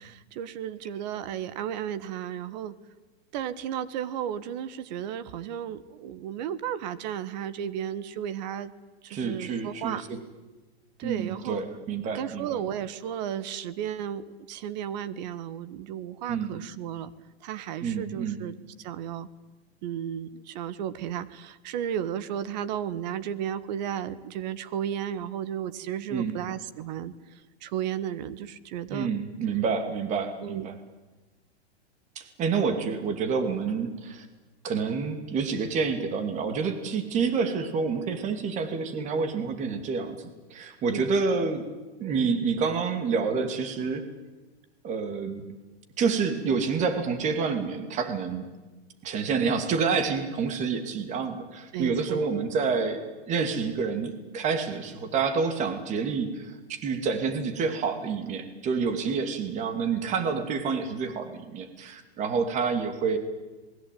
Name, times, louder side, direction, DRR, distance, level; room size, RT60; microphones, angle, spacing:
voice 1, 0.0-2.7 3.3-8.7 9.0-10.0 11.0-11.6 12.1-17.1 17.4-19.3 19.8-29.1 30.4-30.7 40.9-41.1 51.7-52.3, right 9 dB, 40° right, 15 dB, 1.5 m, -34 dB
voice 2, 9.1-10.2 11.0-12.5 16.3-16.5 17.8-18.4 26.1-26.3 28.9-30.7 32.2-34.3 34.6-41.6 42.0-44.1 44.8-45.4 46.0-48.4 49.0-63.2, right 5 dB, 20° right, 9 dB, 2.6 m, -28 dB
27.0 x 21.0 x 9.3 m, 1.2 s
hypercardioid pair, 155°, 32 cm